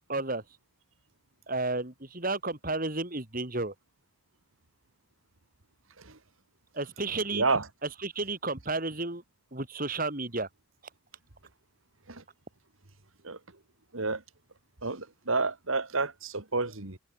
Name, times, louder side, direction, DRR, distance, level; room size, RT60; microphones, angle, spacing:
voice 1, 0.1-0.4 1.5-3.7 6.7-7.4 8.0-9.2 9.5-10.5, right 2 dB, 40° right, 2.9 m, -32 dB
voice 2, 7.3-7.7 12.1-12.2 13.2-13.4 13.9-14.2 14.8-17.0, right 3 dB, 70° right, 2.3 m, -30 dB
head